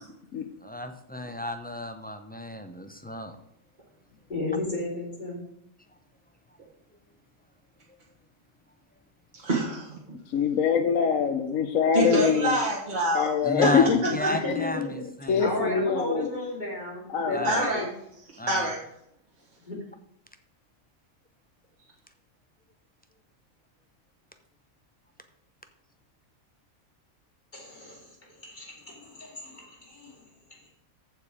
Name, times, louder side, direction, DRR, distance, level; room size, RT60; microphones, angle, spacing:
voice 1, 0.6-3.4 13.4-14.8 15.2-15.5 17.3-17.7 18.4-18.7, left 1 dB, 15° left, 7 dB, 0.4 m, -32 dB
voice 2, 4.3-5.4 14.4-15.0 15.4-17.9 19.6-19.7 27.5-30.2 30.5-30.7, left 2 dB, 35° left, -3 dB, 3.4 m, -34 dB
voice 3, 9.3-10.0 11.9-13.3 13.6-13.7 14.0-14.4 17.4-17.8 18.5-18.8, right 1 dB, 35° right, -3 dB, 1.7 m, -26 dB
voice 4, 10.3-12.6 13.1-14.0 14.3-14.5 15.3-16.3 17.1-17.5, left 6 dB, 70° left, 6 dB, 1.1 m, -24 dB
14.5 x 4.8 x 4.9 m, 0.75 s
omnidirectional pair, 1.5 m